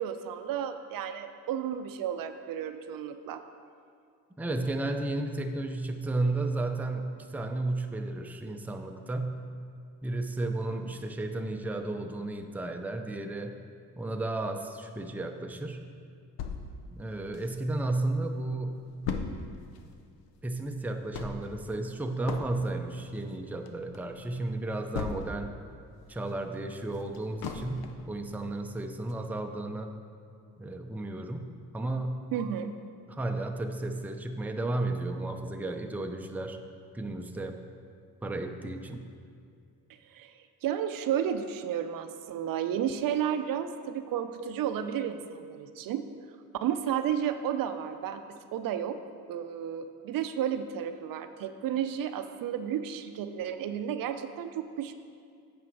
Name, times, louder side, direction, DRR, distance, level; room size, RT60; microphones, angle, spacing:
voice 1, 0.0-3.4 32.3-32.7 40.1-46.0 46.6-48.2 48.5-49.0 49.3-54.9, right 9 dB, 70° right, 9 dB, 0.6 m, -32 dB
voice 2, 4.4-9.4 10.0-13.6 14.0-15.8 16.9-18.8 20.4-25.5 26.1-30.0 30.6-31.5 31.7-32.3 33.1-36.6 36.9-37.6 38.2-39.1, right 2 dB, 5° right, 4 dB, 0.5 m, -33 dB
sound 1, 16.4-17.9 18.3-18.4 18.6-25.6 26.0-28.1 28.6-28.7 29.1-29.2, left 5 dB, 85° left, 0.7 m, -38 dB
8.6 x 5.2 x 4.6 m, 2.3 s
cardioid pair, 85°, 36 cm